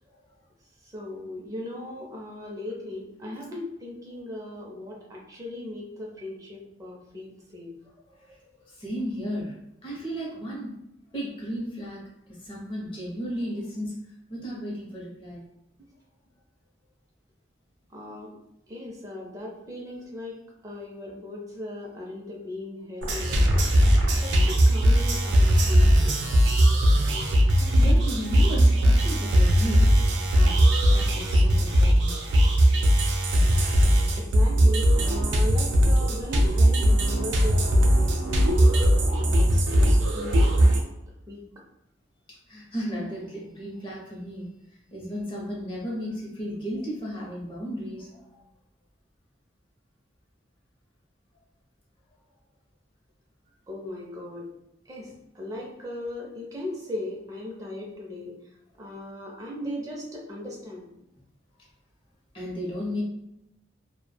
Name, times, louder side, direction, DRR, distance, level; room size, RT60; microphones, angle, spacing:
voice 1, 0.9-7.7 17.9-18.3 18.7-20.4 20.6-23.7 24.2-26.2 34.2-40.8 41.3-41.4 53.7-54.5 54.9-58.4 58.8-60.9, left 1 dB, 20° right, -3 dB, 0.4 m, -38 dB
voice 2, 8.1-8.4 8.6-9.6 9.8-10.8 11.1-12.0 12.4-13.9 14.3-15.4 27.5-29.9 30.3-30.6 30.9-32.3 42.3-44.5 44.9-48.4 62.3-63.0, equal, 30° left, -4 dB, 0.6 m, -34 dB
sound 1, 23.0-40.8, equal, 85° right, 0.5 m, -20 dB
3.0 x 2.0 x 2.2 m, 0.84 s
head